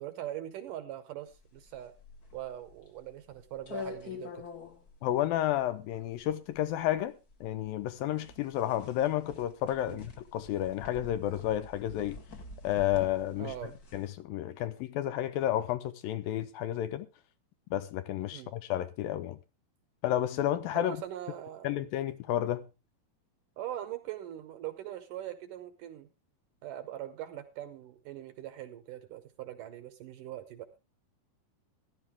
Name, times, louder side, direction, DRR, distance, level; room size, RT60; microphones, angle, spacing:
voice 1, 0.0-1.9 2.3-4.4 9.9-10.0 13.4-13.8 18.3-18.5 20.8-21.7 23.6-26.1 26.6-30.8, right 12 dB, 70° right, 2.2 m, -41 dB
sound 1, 1.3-14.1, left 4 dB, 45° left, 1.2 m, -47 dB
voice 2, 5.0-7.1 7.4-12.2 12.6-13.5 13.9-17.1 17.7-19.4 20.0-21.0 21.6-22.6, left 12 dB, 75° left, 2.3 m, -31 dB
15.0 x 12.0 x 3.5 m
omnidirectional pair, 4.5 m